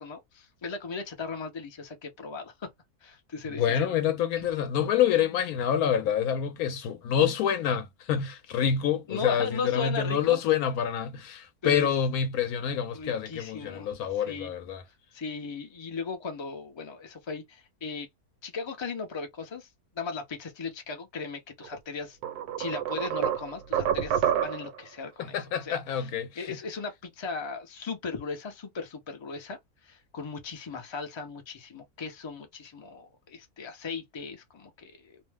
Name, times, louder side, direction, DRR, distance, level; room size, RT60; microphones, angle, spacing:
voice 1, 0.0-2.7 3.0-3.6 4.4-4.5 9.1-10.4 11.6-11.9 12.9-13.9 14.1-14.5 15.1-18.1 18.4-19.7 19.9-22.2 22.6-26.1 26.4-35.2, left 4 dB, 45° left, 0.3 m, -37 dB
voice 2, 3.5-14.8 25.3-26.6, left 8 dB, 75° left, 1.0 m, -27 dB
sound 1, 21.6-21.8 22.2-24.8, right 10 dB, 80° right, 1.1 m, -28 dB
2.7 x 2.0 x 3.3 m
omnidirectional pair, 1.6 m